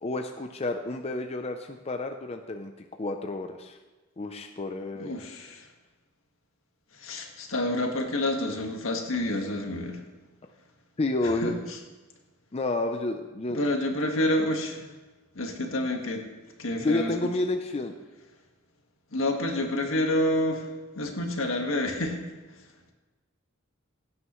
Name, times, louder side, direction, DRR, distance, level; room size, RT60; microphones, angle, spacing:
voice 1, 0.0-2.7 3.0-3.8 4.2-5.1 11.0-11.6 12.5-13.6 16.8-17.9, left 2 dB, 30° left, 5 dB, 0.6 m, -30 dB
voice 2, 4.9-5.7 6.9-10.0 11.4-11.8 13.5-14.9 15.3-16.2 16.6-17.1 19.1-20.7 20.9-22.2, left 1 dB, 80° left, 2 dB, 1.7 m, -28 dB
16.5 x 9.5 x 3.1 m, 1.2 s
head